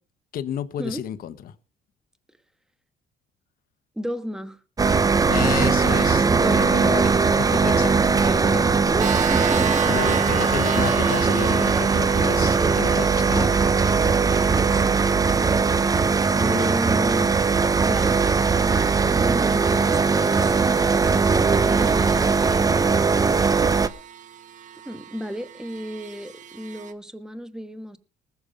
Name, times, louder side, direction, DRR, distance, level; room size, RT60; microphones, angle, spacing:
voice 1, 0.3-1.5 5.3-8.7 9.9-13.6 13.8-14.0 16.4-16.7, left 10 dB, 60° left, 1.1 m, -31 dB
voice 2, 4.0-4.6 6.2-6.9 7.1-7.6 8.0-10.0 12.6-13.0 14.2-15.0 16.3-17.5 17.8-18.2 24.8-28.0, equal, 5° right, 1.3 m, -34 dB
sound 1, 4.8-23.9, right 5 dB, 20° right, 0.7 m, -20 dB
sound 2, 9.0-26.9, right 7 dB, 50° right, 1.5 m, -36 dB
20.0 x 7.0 x 5.1 m
cardioid pair, 110°, 17 cm